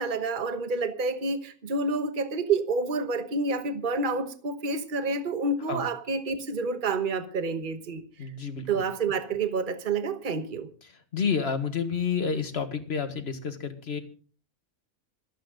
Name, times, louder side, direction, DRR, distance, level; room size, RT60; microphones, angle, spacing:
voice 1, 0.0-8.0 8.7-10.7, right 3 dB, 35° right, 1.3 m, -28 dB
voice 2, 8.2-8.8 11.1-14.0, left 6 dB, 45° left, 1.8 m, -29 dB
26.0 x 9.1 x 3.8 m
omnidirectional pair, 1.6 m